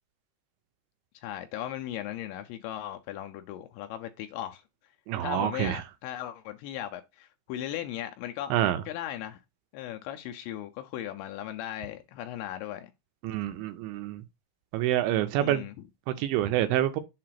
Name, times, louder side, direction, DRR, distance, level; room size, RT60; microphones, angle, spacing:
voice 1, 1.2-4.6 5.2-8.5 8.9-9.4 9.7-12.9 15.4-15.9, left 12 dB, 80° left, 2.7 m, -37 dB
voice 2, 5.1-5.8 8.5-8.8 13.2-14.2 14.7-15.6 16.2-17.0, right 13 dB, 80° right, 2.8 m, -27 dB
7.4 x 2.5 x 5.8 m
omnidirectional pair, 5.7 m